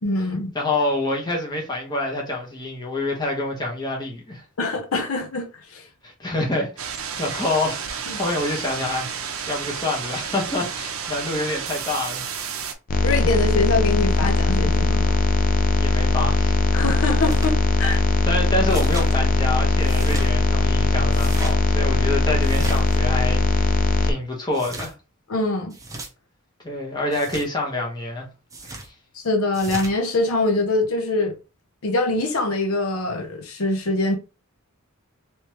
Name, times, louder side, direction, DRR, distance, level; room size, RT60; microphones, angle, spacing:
voice 1, 0.0-0.5 4.6-5.8 8.1-8.2 13.0-15.2 16.7-18.0 25.3-25.7 29.1-31.3 31.8-34.2, left 2 dB, 70° left, 0.8 m, -24 dB
voice 2, 0.5-4.4 6.0-6.7 7.2-9.1 9.5-12.2 15.8-16.6 18.2-24.9 26.6-28.3 28.6-28.7, left 2 dB, 20° left, 1.2 m, -27 dB
sound 1, 6.8-12.7, right 7 dB, 70° right, 0.6 m, -31 dB
sound 2, 12.9-24.1, left 2 dB, 40° left, 0.4 m, -20 dB
sound 3, 17.2-17.5 18.7-19.1 19.8-20.3 21.1-21.5 22.4-23.0 24.5-24.9 25.7-26.1 27.1-27.5 28.5-28.9 29.5-29.9, right 2 dB, 15° right, 0.8 m, -36 dB
3.2 x 3.1 x 3.0 m
head